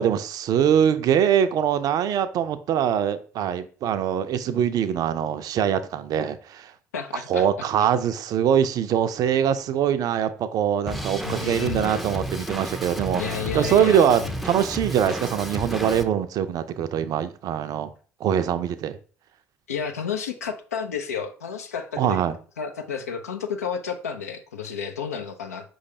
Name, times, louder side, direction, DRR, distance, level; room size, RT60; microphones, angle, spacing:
voice 1, 0.0-6.7 7.3-17.9 18.2-19.0 22.0-22.3, right 9 dB, 50° right, 0.4 m, -23 dB
voice 2, 6.9-7.9 11.2-12.0 13.2-14.6 19.7-22.2 22.6-25.7, left 7 dB, 85° left, 0.4 m, -32 dB
Drum kit, 10.9-16.0, right 1 dB, ahead, 0.5 m, -32 dB
5.0 x 3.1 x 2.7 m
hypercardioid pair, 60°, 8 cm